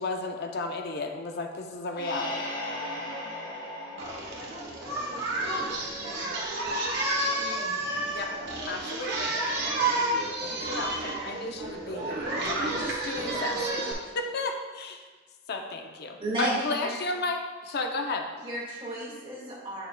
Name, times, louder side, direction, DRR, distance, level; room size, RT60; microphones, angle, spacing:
voice 1, 0.0-2.5 8.1-8.3 8.7-9.4 10.4-15.0 15.5-18.3, left 3 dB, 55° left, 4 dB, 0.5 m, -33 dB
sound 1, 1.9-5.5, left 1 dB, 70° left, 2.0 m, -37 dB
voice 2, 2.6-4.5 5.3-6.5 7.1-7.2 7.8-8.5 13.3-13.7, right 1 dB, 75° right, -5 dB, 1.8 m, -49 dB
Singing, 4.0-13.9, right 2 dB, 60° right, 1.2 m, -30 dB
voice 3, 16.2-16.9 18.4-19.9, right 1 dB, 25° right, -6 dB, 1.9 m, -32 dB
7.4 x 6.7 x 2.2 m, 1.4 s
head